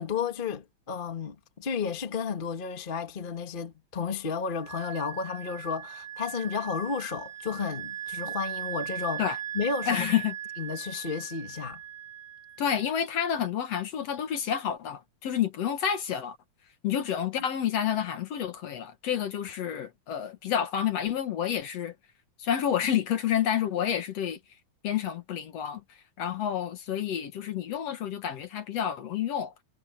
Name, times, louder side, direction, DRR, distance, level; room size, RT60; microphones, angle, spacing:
voice 1, 0.0-9.2 9.5-10.1 10.6-11.8, left 6 dB, 25° left, 1.4 m, -32 dB
Wind instrument woodwind instrument, 4.6-12.9, right 11 dB, 75° right, 5.7 m, -39 dB
voice 2, 9.9-10.4 12.6-16.4 16.8-22.0 22.4-24.4 24.8-29.5, left 9 dB, 60° left, 2.3 m, -29 dB
omnidirectional pair, 3.5 m